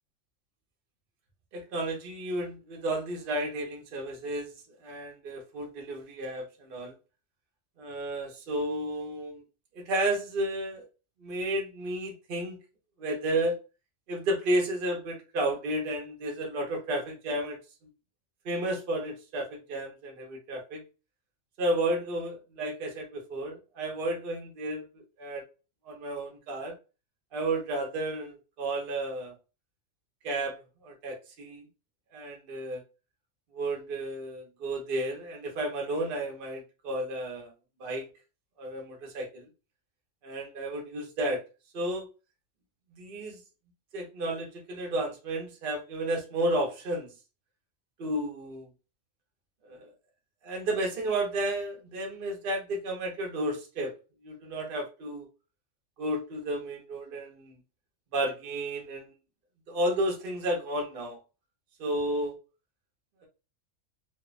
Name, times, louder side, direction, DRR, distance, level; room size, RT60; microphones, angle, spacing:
voice 1, 1.5-4.5 4.8-6.9 7.8-9.4 9.7-10.9 11.2-12.6 13.0-13.6 14.1-17.6 18.4-20.8 21.6-25.4 25.8-26.8 27.3-29.3 30.2-30.5 30.8-31.6 32.1-32.8 33.5-37.5 37.8-38.1 38.6-39.4 40.2-41.4 41.7-42.1 43.0-43.4 43.9-47.1 48.0-48.7 49.6-49.9 50.4-53.9 54.2-55.3 56.0-57.5 58.1-59.1 59.7-61.2 61.8-62.4, right 1 dB, 55° right, 0.7 m, -32 dB
2.6 x 2.0 x 2.3 m
omnidirectional pair, 1.4 m